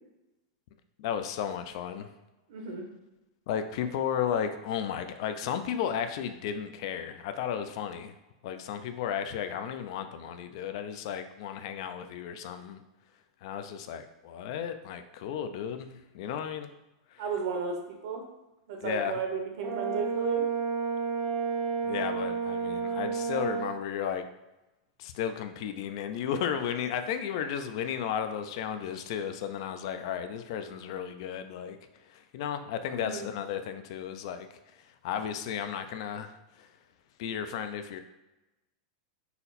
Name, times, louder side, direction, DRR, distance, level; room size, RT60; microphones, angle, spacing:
voice 1, 1.0-2.1 3.5-8.1 8.4-12.8 13.4-16.7 17.1-17.2 18.8-19.2 21.8-24.3 25.0-31.8 32.0-34.5 34.8-36.7 37.2-38.0, left 8 dB, 50° left, 9 dB, 0.3 m, -34 dB
voice 2, 2.5-2.9 17.2-18.2 18.7-20.5 33.0-33.3, right 4 dB, 60° right, 3 dB, 0.8 m, -33 dB
Brass instrument, 19.6-23.7, right 5 dB, 35° right, 0.4 m, -31 dB
4.1 x 2.0 x 3.9 m, 1.0 s
supercardioid pair, 160°, 3 cm